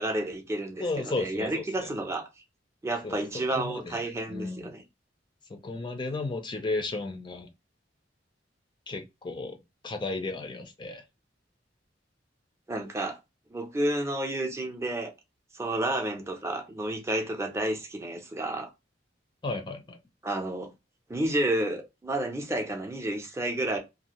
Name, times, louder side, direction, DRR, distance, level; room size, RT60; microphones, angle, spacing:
voice 1, 0.0-2.3 2.8-4.8 12.7-13.2 13.5-15.1 15.5-18.7 20.2-20.7 21.1-23.8, right 1 dB, 15° right, 0.6 m, -30 dB
voice 2, 0.8-1.9 3.0-3.2 3.5-4.0 4.3-4.7 5.5-7.5 8.9-9.6 9.8-11.0 19.4-20.0, left 2 dB, 25° left, 0.4 m, -34 dB
2.7 x 2.5 x 2.9 m
head